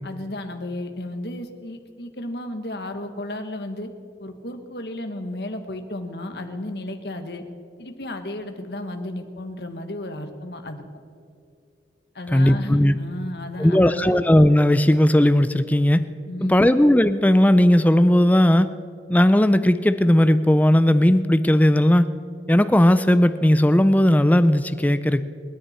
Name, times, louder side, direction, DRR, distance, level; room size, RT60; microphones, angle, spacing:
voice 1, 0.0-3.9 4.2-7.4 7.8-10.8 12.1-14.1 16.3-16.7, left 1 dB, 65° left, 6 dB, 1.4 m, -33 dB
voice 2, 12.3-13.0 13.6-16.0 16.4-18.7 19.1-22.1 22.5-25.2, left 1 dB, 10° left, 12 dB, 0.4 m, -17 dB
29.5 x 10.0 x 4.4 m, 2.4 s
head